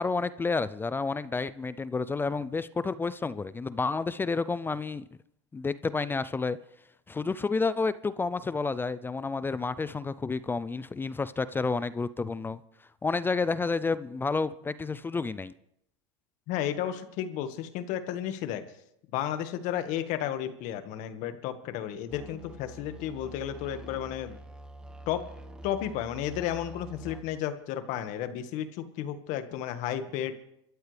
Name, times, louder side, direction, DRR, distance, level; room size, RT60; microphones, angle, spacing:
voice 1, 0.0-5.0 5.5-6.6 7.1-12.6 13.0-15.5, left 4 dB, 15° left, 0.5 m, -30 dB
voice 2, 16.5-18.6 19.1-24.4 25.1-25.2 25.6-30.3, left 11 dB, 60° left, 1.7 m, -33 dB
sound 1, 22.1-27.2, right 1 dB, 5° right, 1.6 m, -46 dB
26.0 x 13.5 x 3.4 m
supercardioid pair, 110°, 15 cm